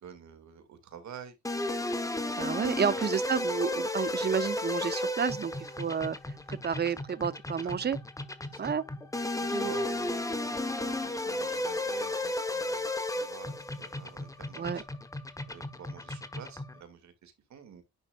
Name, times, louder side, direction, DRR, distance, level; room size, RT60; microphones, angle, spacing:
voice 1, 0.0-1.4 2.7-3.0 7.6-7.8 8.5-8.8 9.3-12.9 13.1-14.8 15.5-17.8, right 7 dB, 65° right, 2.3 m, -48 dB
sound 1, 1.4-16.8, left 2 dB, 10° left, 1.1 m, -34 dB
voice 2, 2.3-8.0 8.6-8.8 9.5-9.7 14.5-14.8, right 7 dB, 35° right, 0.8 m, -31 dB
10.5 x 5.6 x 2.4 m
cardioid pair, 90°, 30 cm